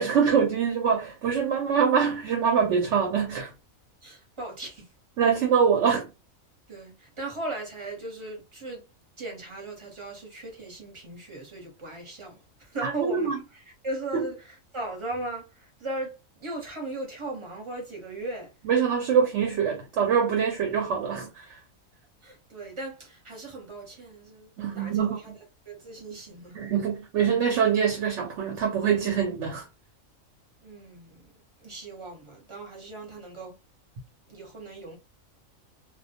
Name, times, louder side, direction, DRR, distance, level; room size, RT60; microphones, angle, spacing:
voice 1, 0.0-3.5 5.2-6.1 12.8-13.3 14.1-14.2 18.7-21.5 24.6-25.4 26.5-29.7, right 7 dB, 65° right, 0.9 m, -24 dB
voice 2, 4.0-4.9 6.7-8.8 9.2-18.5 22.2-24.5 24.8-25.3 25.7-26.6 30.6-31.3 31.6-33.6 34.3-35.0, right 2 dB, 25° right, 0.8 m, -38 dB
2.2 x 2.1 x 2.8 m
omnidirectional pair, 1.4 m